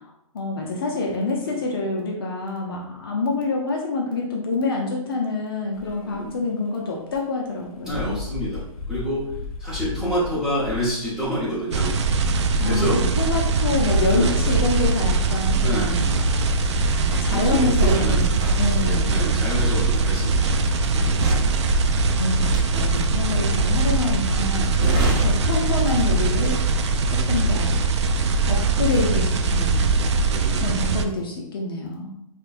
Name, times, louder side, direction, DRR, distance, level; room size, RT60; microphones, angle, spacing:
voice 1, 0.3-8.2 12.6-16.0 17.1-18.3 18.6-19.2 22.2-22.4 22.7-24.7 25.2-26.6 27.1-27.8 28.5-29.9 30.6-32.1, left 3 dB, 40° left, -1 dB, 0.6 m, -26 dB
sound 1, 5.7-6.4 7.1-7.2 7.6-14.8 15.3-15.8, left 4 dB, 85° left, 0.7 m, -36 dB
voice 2, 6.0-6.4 7.8-8.6 8.9-9.3 9.6-11.9 12.6-13.0 14.1-14.3 15.6-15.9 17.3-17.7 18.0-18.3 18.8-20.5 20.9-21.2 24.9-25.2 30.3-30.8, equal, 5° right, -10 dB, 0.8 m, -28 dB
sound 2, 11.7-31.0, right 3 dB, 50° right, 0.4 m, -21 dB
sound 3, 17.0-26.4 26.7-27.0, right 2 dB, 35° right, 0.8 m, -30 dB
5.1 x 2.2 x 2.5 m, 0.78 s
hypercardioid pair, 165°, 18 cm